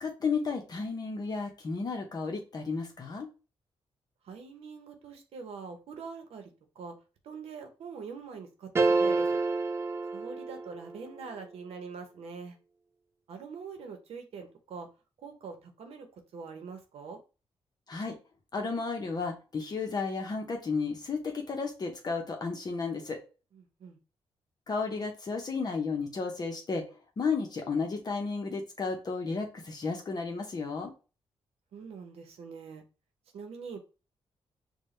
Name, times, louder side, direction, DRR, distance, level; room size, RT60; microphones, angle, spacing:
voice 1, 0.0-3.3 17.9-18.2 18.5-23.2 24.7-26.9 27.2-30.9, left 4 dB, 40° left, 2 dB, 0.8 m, -33 dB
voice 2, 4.2-7.0 7.2-9.4 10.1-12.6 13.3-14.9 15.2-16.1 16.3-17.2 23.5-24.0 31.7-32.8 33.3-33.8, right 5 dB, 80° right, 5 dB, 0.9 m, -44 dB
sound 1, 8.8-11.0, right 3 dB, 25° right, 0.4 m, -28 dB
4.9 x 2.2 x 3.1 m, 0.32 s
cardioid pair, 100°, 10 cm